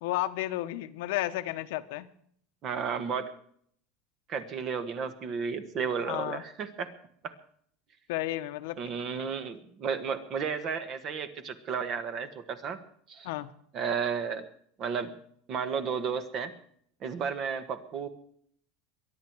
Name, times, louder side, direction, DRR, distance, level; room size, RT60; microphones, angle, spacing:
voice 1, 0.0-2.1 6.0-6.4 8.1-8.8 13.2-13.5, left 16 dB, 75° left, 10 dB, 1.0 m, -32 dB
voice 2, 2.6-3.3 4.3-6.9 7.2-7.3 8.8-12.8 13.1-13.3 13.7-14.5 14.8-15.1 15.5-16.5 17.0-18.1, right 6 dB, 35° right, 10 dB, 1.5 m, -33 dB
23.0 x 10.5 x 4.7 m, 0.62 s
supercardioid pair, 160°, 0 cm